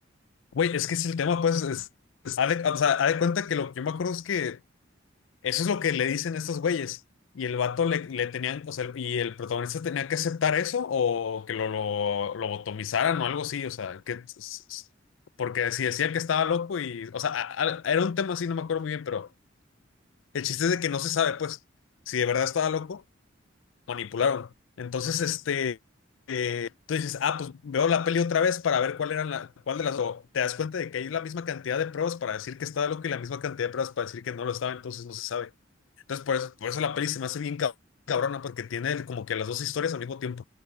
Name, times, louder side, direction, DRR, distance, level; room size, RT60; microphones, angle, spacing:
voice 1, 0.5-1.9 2.2-4.6 5.4-7.0 7.3-14.8 15.4-19.3 20.3-21.6 22.1-23.0 23.9-25.8 26.3-35.5 36.1-37.7 38.1-40.4, left 7 dB, 80° left, 0.4 m, -28 dB
head